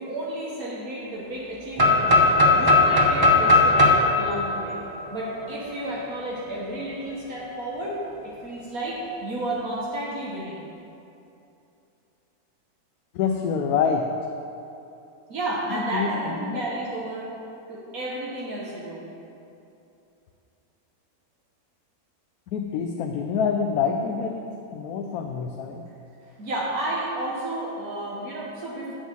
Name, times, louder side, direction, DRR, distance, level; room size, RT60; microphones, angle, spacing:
voice 1, 0.0-2.1 2.4-4.8 5.1-8.0 8.2-10.6 15.3-17.3 17.7-19.1 26.2-29.0, right 1 dB, 70° right, -5 dB, 1.6 m, -32 dB
sound 1, 1.8-5.6, left 3 dB, 25° right, 0.5 m, -18 dB
voice 2, 13.1-14.1 15.7-16.6 22.5-25.9, left 6 dB, 75° left, 3 dB, 1.1 m, -26 dB
7.0 x 6.3 x 7.7 m, 2.8 s
omnidirectional pair, 1.6 m